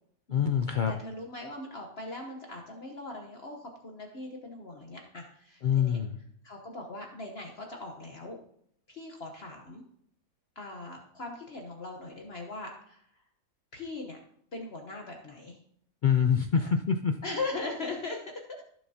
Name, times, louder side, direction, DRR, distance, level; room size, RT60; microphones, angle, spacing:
voice 1, 0.3-0.9 5.6-6.2 16.0-17.1, left 7 dB, 80° left, 6 dB, 0.4 m, -25 dB
voice 2, 0.9-6.0 6.4-8.4 8.9-9.8 10.6-13.0 13.7-14.2 14.5-15.6 16.5-16.7 17.2-18.4, left 2 dB, 50° left, 1 dB, 1.2 m, -40 dB
15.0 x 6.6 x 2.8 m, 0.69 s
omnidirectional pair, 1.5 m